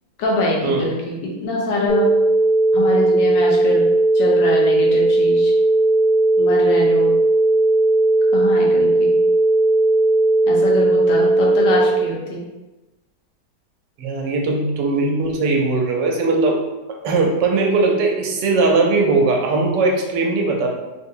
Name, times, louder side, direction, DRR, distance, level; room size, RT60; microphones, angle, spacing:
voice 1, 0.2-2.1 2.7-3.9 4.1-5.5 6.4-7.2 8.3-9.1 10.5-12.4, left 1 dB, 80° left, -2 dB, 1.4 m, -24 dB
sound 1, 1.9-11.9, right 2 dB, 35° right, 0.8 m, -16 dB
voice 2, 14.0-16.6 17.0-20.7, right 3 dB, 85° right, 0 dB, 1.3 m, -19 dB
3.4 x 2.7 x 2.5 m, 1.1 s
omnidirectional pair, 1.9 m